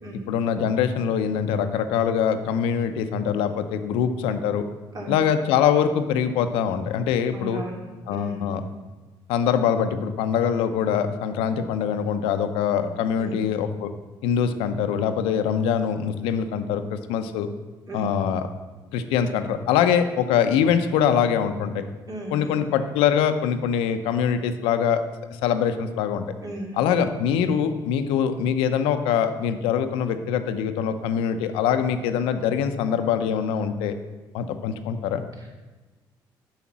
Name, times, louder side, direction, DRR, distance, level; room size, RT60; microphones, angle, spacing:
voice 1, 0.3-4.6 5.1-7.6 8.1-8.6 9.3-13.9 14.2-17.5 17.9-18.5 18.9-21.8 22.3-25.0 25.4-26.2 26.8-33.9 34.3-35.2, left 8 dB, 90° left, 9 dB, 0.7 m, -23 dB
voice 2, 7.3-8.5 13.2-13.5 17.9-18.1 22.1-22.6 26.4-26.9 35.4-35.6, right 1 dB, 45° right, -1 dB, 2.6 m, -36 dB
7.2 x 5.8 x 7.3 m, 1.2 s
cardioid pair, 80°, 9 cm